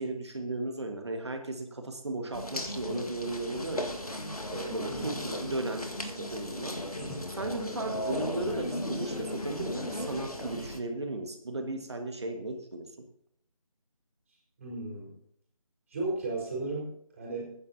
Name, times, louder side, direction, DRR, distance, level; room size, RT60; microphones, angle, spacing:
voice 1, 0.0-3.9 4.5-6.8 7.4-13.1, right 2 dB, 50° right, 4 dB, 1.7 m, -35 dB
sound 1, 2.3-10.8, left 1 dB, 80° left, 1.8 m, -36 dB
voice 2, 4.9-5.2 7.0-7.2 14.6-15.2 15.9-17.5, right 2 dB, 25° right, -4 dB, 4.6 m, -35 dB
22.5 x 9.8 x 2.8 m, 0.73 s
figure-of-eight pair, 160°, 19 cm